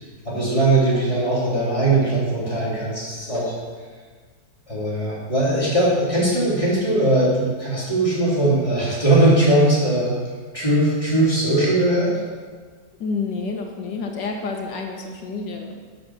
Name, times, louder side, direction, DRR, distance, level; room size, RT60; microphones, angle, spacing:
voice 1, 0.3-3.5 4.7-10.1 10.5-12.1, right 1 dB, 15° left, -8 dB, 3.6 m, -20 dB
voice 2, 13.0-15.7, left 4 dB, 85° left, 2 dB, 1.9 m, -29 dB
12.5 x 6.8 x 6.3 m, 1.5 s
omnidirectional pair, 1.9 m